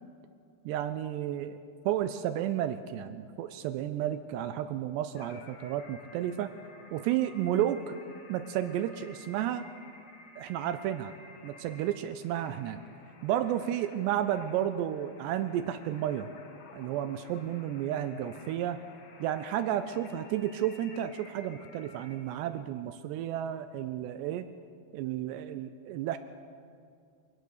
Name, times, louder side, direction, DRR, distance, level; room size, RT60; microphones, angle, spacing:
voice 1, 0.7-1.6 1.9-6.5 6.9-8.0 8.3-9.7 10.4-11.1 11.4-12.8 13.2-16.3 16.7-18.8 19.2-24.5 24.9-26.2, right 11 dB, 80° right, 11 dB, 2.5 m, -32 dB
sound 1, 5.2-22.2, left 3 dB, 55° left, 3.2 m, -53 dB
23.0 x 18.0 x 6.6 m, 2.4 s
omnidirectional pair, 5.4 m